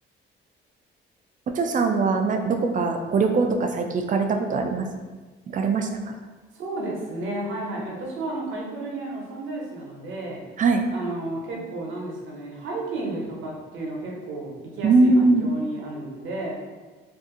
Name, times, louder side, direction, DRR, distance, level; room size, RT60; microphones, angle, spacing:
voice 1, 1.5-4.8 5.5-6.1 10.6-10.8 14.8-15.5, right 3 dB, 40° right, 5 dB, 0.4 m, -21 dB
voice 2, 6.5-10.4 10.9-16.5, right 2 dB, 80° right, -2 dB, 0.9 m, -32 dB
2.7 x 2.5 x 3.7 m, 1.3 s
cardioid pair, 90°, 20 cm